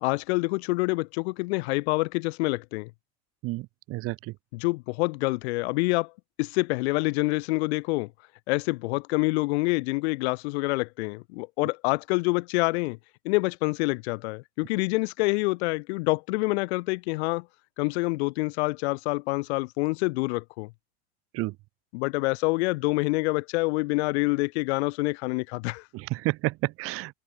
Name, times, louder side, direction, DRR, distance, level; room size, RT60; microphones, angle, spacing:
voice 1, 0.0-2.9 4.5-6.1 6.4-8.1 8.5-13.0 13.2-17.5 17.8-20.7 21.9-25.8, left 25 dB, 75° left, 1.4 m, -27 dB
voice 2, 3.4-4.3 21.3-21.5 25.9-27.1, right 21 dB, 45° right, 0.5 m, -30 dB
supercardioid pair, 125°, 33 cm